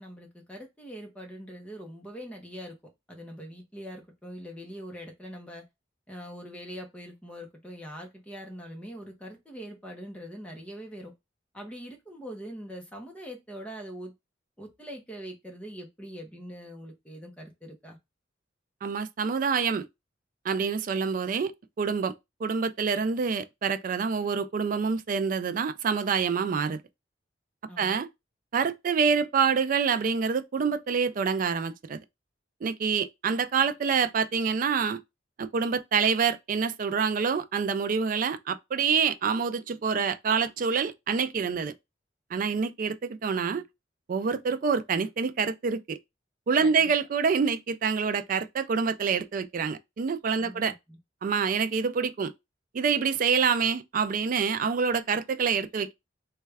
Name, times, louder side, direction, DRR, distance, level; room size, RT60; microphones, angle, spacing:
voice 1, 0.0-2.8 3.1-5.7 6.1-11.1 11.5-14.1 14.6-18.0 27.7-28.0 46.6-46.9 50.4-51.0, equal, 5° left, 0.8 m, -43 dB
voice 2, 18.8-19.9 20.4-21.5 21.8-22.1 22.4-26.8 27.8-28.1 28.5-32.0 32.6-35.0 35.4-41.7 42.3-43.7 44.1-46.0 46.5-50.7 51.2-52.3 52.7-55.9, right 6 dB, 45° right, 0.3 m, -26 dB
3.2 x 2.3 x 3.3 m
head